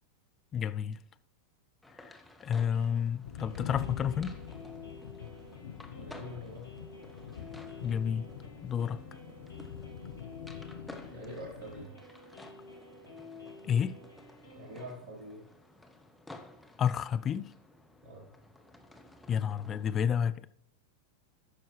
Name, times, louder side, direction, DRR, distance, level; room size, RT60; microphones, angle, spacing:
voice 1, 0.5-1.0 2.0-2.2 2.4-4.3 7.8-8.3 8.6-9.0 13.6-14.0 16.8-17.5 19.3-20.5, left 8 dB, 25° left, 0.4 m, -30 dB
sound 1, 1.8-19.9, left 2 dB, 5° left, 0.8 m, -54 dB
voice 2, 2.5-2.9 5.9-6.7 10.9-12.0 14.5-15.5 18.0-18.3, equal, 35° right, 3.5 m, -45 dB
sound 2, 3.2-11.9, left 9 dB, 60° left, 0.7 m, -44 dB
sound 3, 3.4-14.9, left 2 dB, 75° left, 2.0 m, -51 dB
14.5 x 5.9 x 3.2 m
figure-of-eight pair, 90°, 0 cm